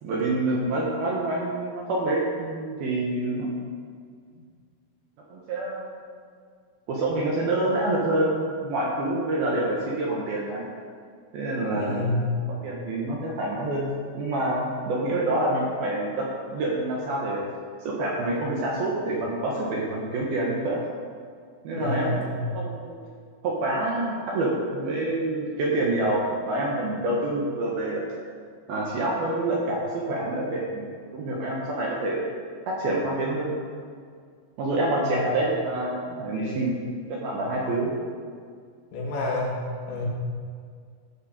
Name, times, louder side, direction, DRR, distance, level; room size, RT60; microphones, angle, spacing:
voice 1, 0.0-3.5 5.3-6.0 6.9-10.7 11.3-12.1 12.5-16.3 16.5-17.4 17.8-20.8 21.6-22.2 22.5-23.0 23.4-28.1 28.7-32.3 32.7-33.6 34.6-36.7 37.1-37.9, right 2 dB, 65° right, -4 dB, 2.6 m, -27 dB
voice 2, 11.7-12.2 21.7-22.5 35.0-35.2 36.3-36.5 38.9-40.1, left 2 dB, 80° left, -3 dB, 4.8 m, -29 dB
15.5 x 6.5 x 6.6 m, 2.1 s
omnidirectional pair, 5.9 m